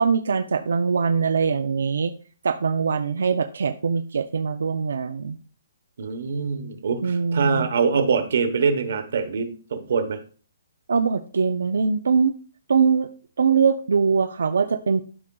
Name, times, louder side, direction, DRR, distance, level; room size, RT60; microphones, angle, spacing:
voice 1, 0.0-2.1 2.4-5.4 7.0-7.7 10.9-12.4 12.7-13.1 13.4-15.0, right 5 dB, 85° right, 8 dB, 0.6 m, -22 dB
voice 2, 6.0-10.2, right 5 dB, 50° right, 8 dB, 1.1 m, -24 dB
12.0 x 5.0 x 2.3 m, 0.40 s
hypercardioid pair, 180°, 0 cm